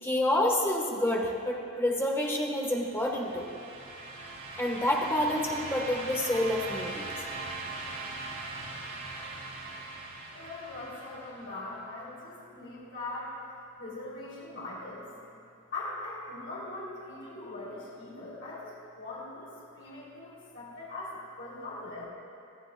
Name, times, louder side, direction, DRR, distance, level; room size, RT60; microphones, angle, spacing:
voice 1, 0.0-3.5 4.6-7.1, left 1 dB, 10° left, -1 dB, 1.4 m, -28 dB
sound 1, 2.7-11.6, right 2 dB, 85° right, 2.5 m, -40 dB
voice 2, 10.3-13.3 13.8-15.2 15.7-22.0, left 2 dB, 60° left, -8 dB, 3.3 m, -41 dB
20.5 x 13.5 x 2.4 m, 2.8 s
head